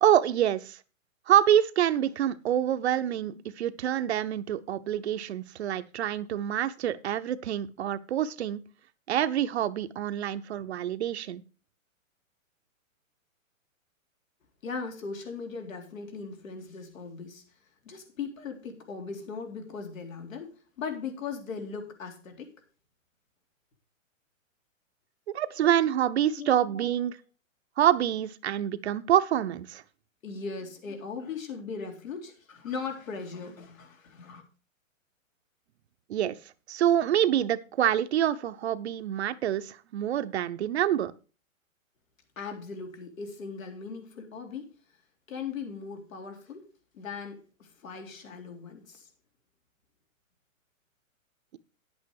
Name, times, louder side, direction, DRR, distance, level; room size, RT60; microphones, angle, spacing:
voice 1, 0.0-0.8 1.3-8.6 9.1-11.4 25.3-27.1 27.8-29.8 36.1-36.4 36.7-41.1, right 11 dB, 55° right, 12 dB, 0.7 m, -26 dB
voice 2, 14.6-17.4 17.8-22.5 26.4-27.2 30.2-34.4 42.4-44.7 45.3-46.7 46.9-49.1, left 5 dB, 75° left, 4 dB, 3.6 m, -39 dB
10.5 x 8.4 x 4.7 m, 0.35 s
hypercardioid pair, 160°, 40 cm